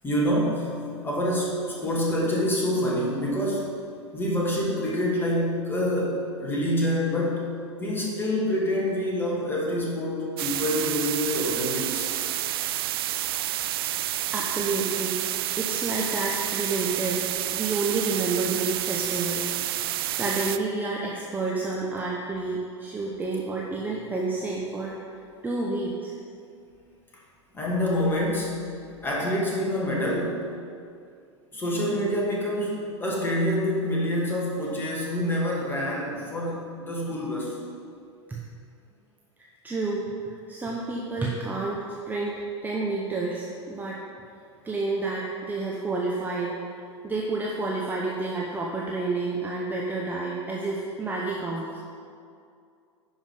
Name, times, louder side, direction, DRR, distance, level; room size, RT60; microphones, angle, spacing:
voice 1, 0.0-3.7 4.1-7.5 7.8-12.1 27.5-28.6 29.0-30.5 31.5-37.6, equal, 15° left, -4 dB, 2.3 m, -26 dB
sound 1, 10.4-20.6, right 14 dB, 50° right, 0.4 m, -29 dB
voice 2, 14.3-15.2 15.5-17.2 17.5-25.1 25.4-26.2 38.3-38.4 39.6-41.8 42.1-42.3 42.6-44.0 44.6-46.6 47.0-51.8, right 3 dB, 10° right, -3 dB, 0.9 m, -29 dB
10.5 x 5.3 x 5.4 m, 2.4 s
figure-of-eight pair, 90°, 15 cm